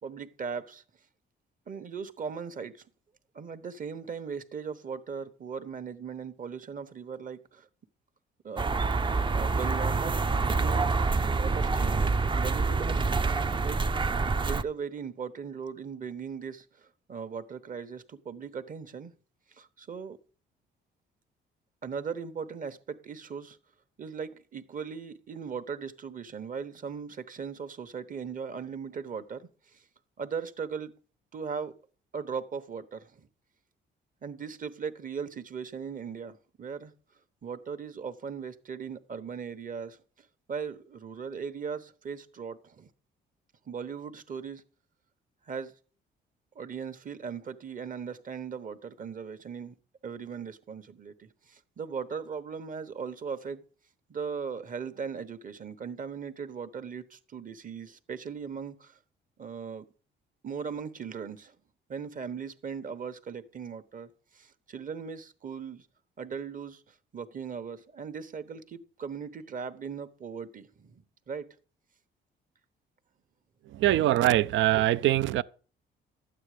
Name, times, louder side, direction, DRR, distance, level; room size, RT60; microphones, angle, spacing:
voice 1, 0.0-0.8 1.7-2.8 3.3-7.7 8.4-8.7 9.3-10.9 11.3-13.8 14.5-19.1 19.5-20.2 21.8-23.6 24.0-29.8 30.2-30.9 31.3-31.7 32.1-33.3 34.2-36.9 37.4-42.9 43.7-44.6 45.4-45.7 46.5-49.7 50.0-53.6 54.1-59.0 59.4-59.8 60.4-61.5 61.9-65.9 66.2-71.5, right 6 dB, 45° right, 1.1 m, -38 dB
sound 1, 8.6-14.6, right 3 dB, 25° right, 0.6 m, -27 dB
voice 2, 73.7-75.4, right 14 dB, 75° right, 0.5 m, -23 dB
12.5 x 8.9 x 5.0 m
cardioid pair, 90°, 20 cm